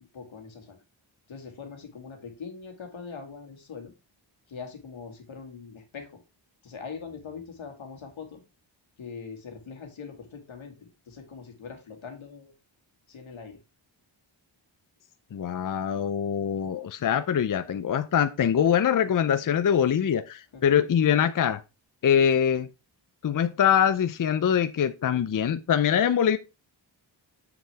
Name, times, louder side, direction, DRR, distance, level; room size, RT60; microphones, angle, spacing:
voice 1, 0.1-0.8 1.3-3.9 4.5-6.1 6.6-8.4 9.0-12.5 13.1-13.6 20.5-20.6, left 5 dB, 85° left, 2.0 m, -42 dB
voice 2, 15.3-21.6 22.0-22.7 23.2-26.4, left 8 dB, 45° left, 0.6 m, -23 dB
7.1 x 6.3 x 3.4 m
cardioid pair, 75°, 46 cm